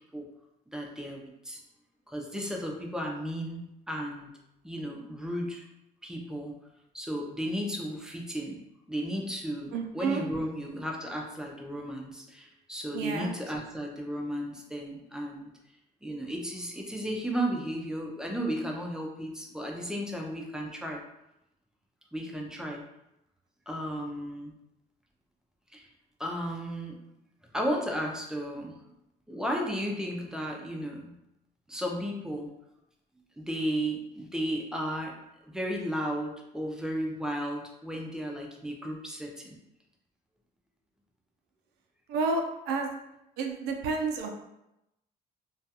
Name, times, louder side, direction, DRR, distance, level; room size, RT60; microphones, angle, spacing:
voice 1, 0.7-1.6 2.1-4.3 4.6-5.7 6.0-6.5 6.9-8.6 8.9-15.5 16.0-21.0 22.1-22.8 23.7-24.5 25.7-25.9 26.2-27.0 27.5-28.7 29.3-31.1 31.7-32.5 33.4-35.1 35.5-39.6, equal, 5° right, 0 dB, 0.4 m, -34 dB
voice 2, 9.7-10.2 12.9-13.3 42.1-42.9 43.4-44.3, right 4 dB, 85° right, 3 dB, 0.4 m, -30 dB
2.3 x 2.3 x 2.7 m, 0.87 s
cardioid pair, 110°, 17 cm